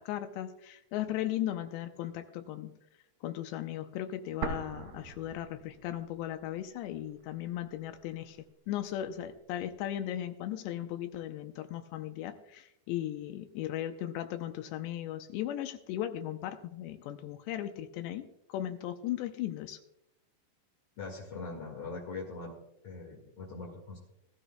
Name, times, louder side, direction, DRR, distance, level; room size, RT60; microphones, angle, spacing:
voice 1, 0.0-2.7 3.2-8.4 8.7-19.8, left 12 dB, 80° left, 8 dB, 2.7 m, -37 dB
sound 1, 4.4-6.4 6.7-6.8 7.5-8.4, right 5 dB, 65° right, 2.4 m, -40 dB
voice 2, 21.0-22.5 22.8-24.0, left 3 dB, 50° left, -2 dB, 1.6 m, -41 dB
19.0 x 13.0 x 2.2 m, 0.83 s
omnidirectional pair, 5.2 m